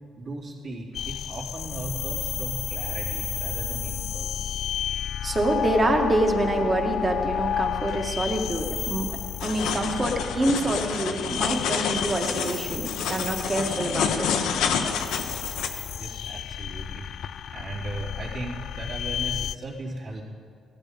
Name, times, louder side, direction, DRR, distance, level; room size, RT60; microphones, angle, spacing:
voice 1, 0.2-4.5 5.2-5.3 15.6-20.2, right 2 dB, 55° right, -5 dB, 3.7 m, -37 dB
sound 1, 0.9-19.5, left 10 dB, 70° left, 0.3 m, -32 dB
voice 2, 5.2-9.1 9.4-14.3, right 1 dB, 25° right, 2 dB, 1.9 m, -26 dB
sound 2, 9.4-15.7, left 7 dB, 90° left, 1.1 m, -28 dB
16.0 x 12.5 x 5.3 m, 2.1 s
cardioid pair, 90°, 0 cm